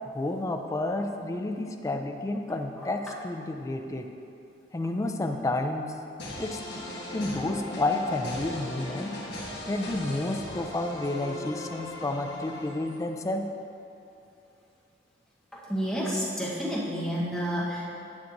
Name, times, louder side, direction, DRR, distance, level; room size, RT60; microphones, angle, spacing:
voice 1, 0.0-4.1 4.7-6.0 6.4-6.6 7.1-9.1 9.7-13.5, left 2 dB, 20° left, 4 dB, 0.3 m, -30 dB
sound 1, 6.2-13.1, left 1 dB, 70° left, 1.3 m, -38 dB
voice 2, 15.5-17.9, equal, 5° left, -7 dB, 1.1 m, -30 dB
9.6 x 5.8 x 2.6 m, 2.7 s
head